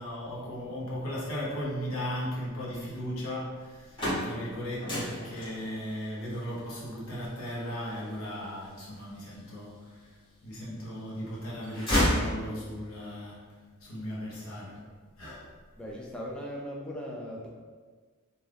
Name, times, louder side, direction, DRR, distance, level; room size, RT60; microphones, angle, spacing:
voice 1, 0.0-14.9 15.2-15.5, equal, 70° left, -6 dB, 0.9 m, -37 dB
sound 1, 3.6-9.6 10.2-11.0 11.3-12.9, equal, 25° left, 1.2 m, -32 dB
voice 2, 15.8-17.5, equal, 5° left, -3 dB, 0.3 m, -38 dB
2.7 x 2.4 x 3.3 m, 1.5 s
head